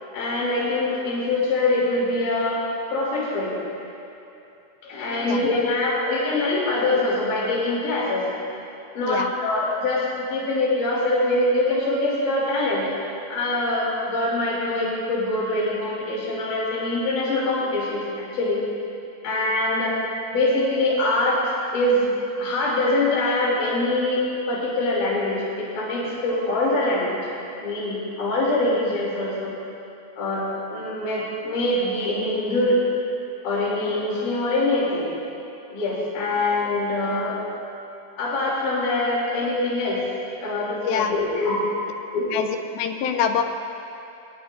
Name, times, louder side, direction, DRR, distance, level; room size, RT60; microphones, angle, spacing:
voice 1, 0.1-2.6 2.9-3.6 4.8-8.2 8.9-12.8 13.3-18.6 19.2-19.9 20.3-21.4 21.7-22.1 22.4-27.2 27.6-29.5 30.1-30.4 30.7-32.8 33.4-35.1 35.7-37.4 38.2-41.6 42.1-42.3, left 2 dB, 55° left, -7 dB, 4.5 m, -24 dB
voice 2, 42.7-43.4, left 7 dB, 80° left, 5 dB, 2.5 m, -24 dB
22.0 x 20.0 x 2.6 m, 2.8 s
omnidirectional pair, 4.4 m